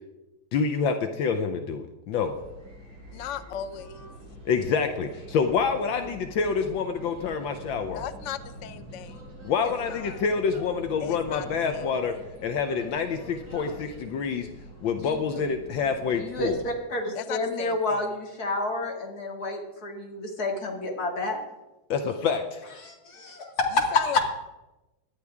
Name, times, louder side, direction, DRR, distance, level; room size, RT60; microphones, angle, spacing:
voice 1, 0.5-2.3 4.4-8.0 9.4-14.5 14.8-16.6 21.9-22.6, left 5 dB, 75° left, 7 dB, 1.6 m, -27 dB
sound 1, 2.1-16.7, right 1 dB, 65° right, 5.8 m, -44 dB
voice 2, 3.1-4.1 7.9-9.2 9.6-10.2 11.0-12.2 17.1-18.0 23.9-24.2, left 9 dB, 90° left, 12 dB, 0.6 m, -37 dB
voice 3, 15.0-15.4 16.1-21.4 22.8-23.9, left 2 dB, 50° left, 1 dB, 2.7 m, -30 dB
18.0 x 11.5 x 3.6 m, 1.0 s
omnidirectional pair, 2.2 m